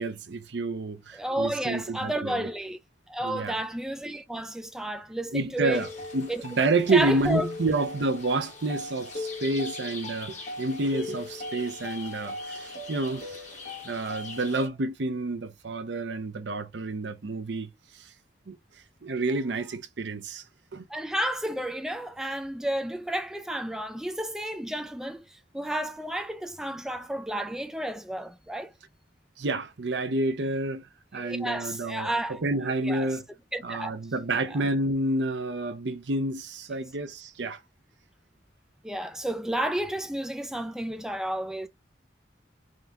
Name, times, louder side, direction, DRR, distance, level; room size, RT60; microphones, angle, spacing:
voice 1, 0.0-2.5 3.2-3.5 5.3-5.9 6.1-13.4 13.8-17.7 18.5-18.6 19.0-20.4 20.7-20.8 29.4-30.9 31.1-32.1 32.4-33.2 33.6-37.6, right 2 dB, 75° right, 0.7 m, -29 dB
voice 2, 1.1-2.8 3.1-5.9 6.3-6.4 6.9-7.5 20.9-28.7 31.1-32.4 32.8-33.2 33.5-34.0 34.3-34.6 38.8-41.7, right 1 dB, 5° right, 0.3 m, -31 dB
sound 1, 5.7-14.7, left 2 dB, 40° left, 1.5 m, -38 dB
3.8 x 2.8 x 3.5 m
head